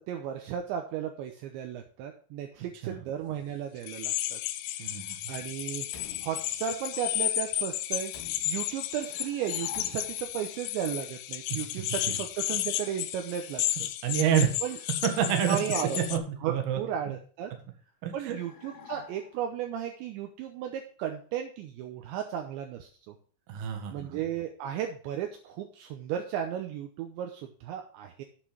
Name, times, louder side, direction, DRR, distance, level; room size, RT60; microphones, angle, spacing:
voice 1, 0.1-4.4 4.9-5.0 5.3-5.9 6.2-8.1 8.5-13.9 14.6-14.8 15.5-16.0 16.4-17.5 18.1-23.1 23.9-28.2, right 9 dB, 80° right, 4 dB, 2.9 m, -35 dB
sound 1, 3.8-16.2, left 13 dB, 85° left, 3.2 m, -33 dB
voice 2, 4.8-5.2 11.5-11.9 14.0-14.5 15.0-15.6 16.0-16.8 17.1-17.2 18.0-18.4 23.5-24.1, right 8 dB, 60° right, 5 dB, 2.8 m, -28 dB
Slam, 5.9-7.0 8.0-9.0 9.7-10.6 11.7-12.7, left 5 dB, 45° left, 3.4 m, -52 dB
sound 2, 9.1-10.3 18.3-19.6, left 7 dB, 65° left, 3.1 m, -48 dB
8.7 x 7.9 x 5.0 m, 0.42 s
omnidirectional pair, 5.8 m